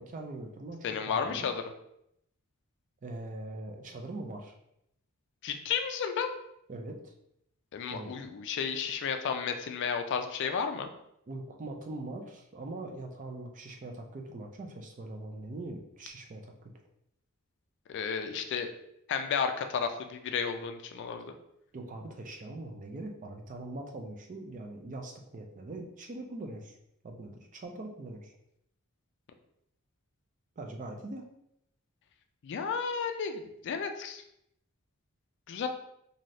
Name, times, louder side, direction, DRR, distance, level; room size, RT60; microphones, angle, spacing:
voice 1, 0.0-1.5 3.0-4.5 6.7-7.1 7.9-8.1 11.3-16.5 21.7-26.7 27.0-28.3 30.6-31.2, right 2 dB, 35° right, 3 dB, 0.4 m, -42 dB
voice 2, 0.8-1.6 5.4-6.3 7.7-10.9 17.9-18.7 19.1-21.3 32.4-34.2 35.5-35.7, left 6 dB, 55° left, 6 dB, 0.3 m, -32 dB
2.6 x 2.6 x 3.1 m, 0.77 s
head